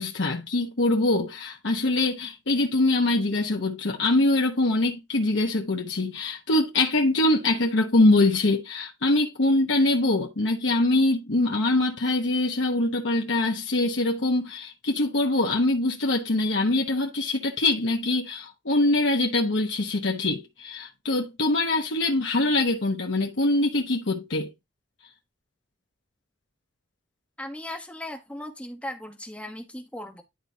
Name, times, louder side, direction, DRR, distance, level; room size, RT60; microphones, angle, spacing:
voice 1, 0.0-24.5, left 2 dB, 85° left, 1.1 m, -23 dB
voice 2, 27.4-30.2, left 1 dB, 5° left, 1.1 m, -37 dB
11.5 x 4.3 x 2.7 m
head